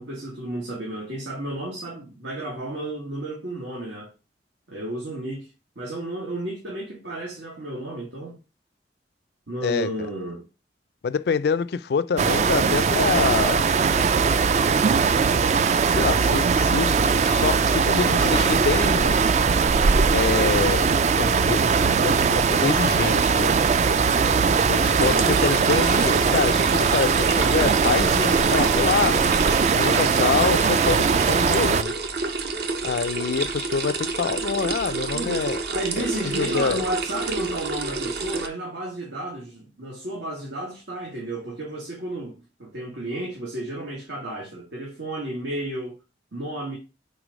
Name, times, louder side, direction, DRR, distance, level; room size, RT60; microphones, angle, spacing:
voice 1, 0.0-4.1 4.7-5.5 5.8-8.4 9.5-10.5 25.0-25.4 35.1-46.0 46.3-46.8, right 1 dB, 90° right, 1.7 m, -32 dB
voice 2, 11.0-13.7 15.9-16.9 17.2-19.3 20.1-21.6 22.0-23.5 24.7-29.2 29.7-32.0 32.8-35.6 36.0-36.8, left 6 dB, 65° left, 0.3 m, -26 dB
sound 1, 12.2-31.8, right 5 dB, 40° right, 0.3 m, -20 dB
sound 2, 24.7-38.5, right 3 dB, 65° right, 0.8 m, -29 dB
4.7 x 4.0 x 5.1 m
head